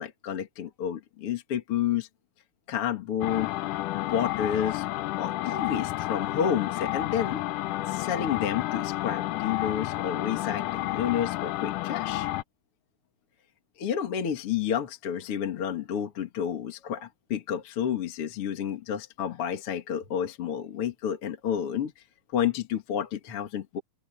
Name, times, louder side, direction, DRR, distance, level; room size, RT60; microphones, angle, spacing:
voice 1, 0.0-2.1 2.7-3.5 3.9-4.9 5.2-7.4 7.9-12.3 13.8-21.9 22.3-23.8, left 9 dB, 50° left, 2.2 m, -30 dB
sound 1, 3.2-12.4, left 16 dB, 80° left, 2.1 m, -31 dB
omnidirectional pair, 4.0 m